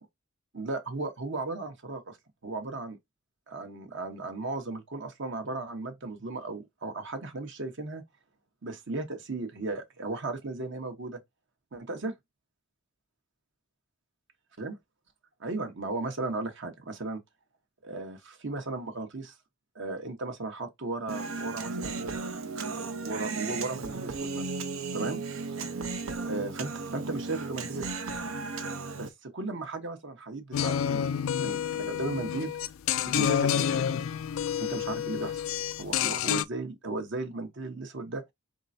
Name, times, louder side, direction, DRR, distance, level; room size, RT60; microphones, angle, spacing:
voice 1, 0.5-2.2 2.4-3.0 3.5-8.0 8.6-11.2 11.7-12.1 14.6-14.7 15.4-17.2 17.8-19.3 19.7-22.2 23.0-24.5 24.9-25.6 26.2-27.9 28.9-32.6 33.0-34.1 34.5-35.4 35.8-38.2, right 3 dB, 60° right, 1.0 m, -36 dB
Human voice, 21.1-29.1, right 4 dB, 85° right, 0.8 m, -35 dB
sound 1, 30.5-36.5, left 9 dB, 70° left, 0.3 m, -29 dB
4.2 x 3.7 x 2.6 m
head